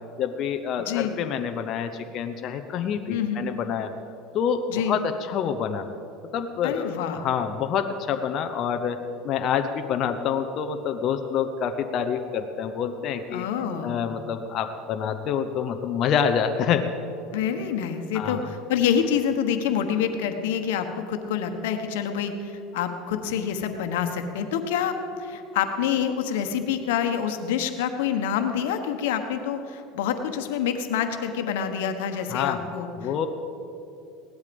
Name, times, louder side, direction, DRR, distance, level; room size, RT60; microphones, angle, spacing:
voice 1, 0.2-3.9 4.3-5.8 6.3-9.0 9.2-13.4 13.8-16.9 18.1-18.5 32.3-32.6 33.0-33.3, left 7 dB, 45° left, 6 dB, 0.8 m, -27 dB
voice 2, 0.8-1.2 3.1-3.4 4.7-5.0 6.6-7.2 13.3-14.0 17.3-33.3, left 8 dB, 85° left, 7 dB, 1.3 m, -27 dB
17.5 x 12.0 x 5.3 m, 2.7 s
supercardioid pair, 125°, 0 cm